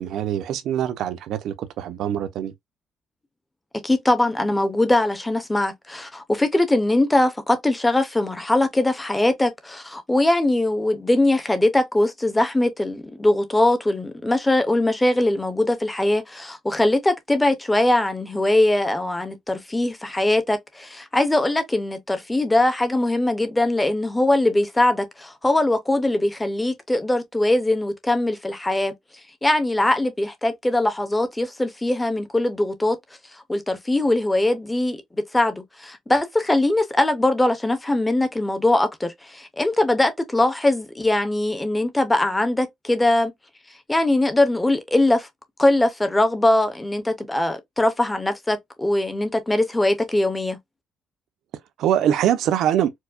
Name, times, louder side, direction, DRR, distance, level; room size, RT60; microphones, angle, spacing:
voice 1, 0.0-2.5 51.8-52.9, right 10 dB, 75° right, 0.5 m, -23 dB
voice 2, 3.8-28.9 29.4-33.0 33.5-35.0 35.3-43.3 43.9-45.3 45.6-50.6, left 1 dB, 10° left, 0.5 m, -21 dB
4.5 x 2.1 x 2.4 m
cardioid pair, 170°, 0 cm